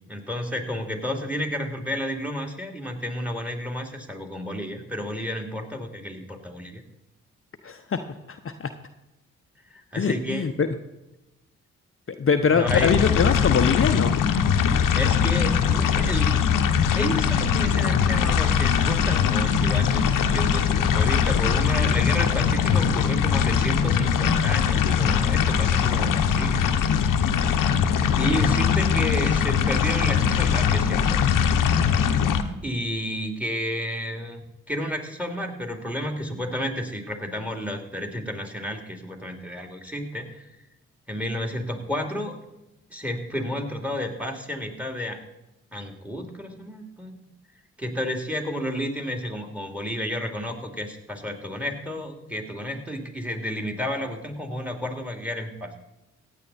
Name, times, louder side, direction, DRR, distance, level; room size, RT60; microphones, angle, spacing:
voice 1, 0.1-6.8 9.7-10.5 12.5-13.0 14.9-16.3 16.9-26.7 28.2-31.2 32.6-40.5 41.1-42.4 42.9-45.2 45.7-47.3 47.8-55.8, equal, 5° right, 5 dB, 2.9 m, -31 dB
voice 2, 7.6-8.0 8.3-8.7 10.0-10.7 12.2-14.1, left 6 dB, 40° left, 7 dB, 0.9 m, -23 dB
sound 1, 12.7-32.4, left 7 dB, 75° left, 1.0 m, -21 dB
15.5 x 9.7 x 4.2 m, 0.95 s
supercardioid pair, 40°, 32 cm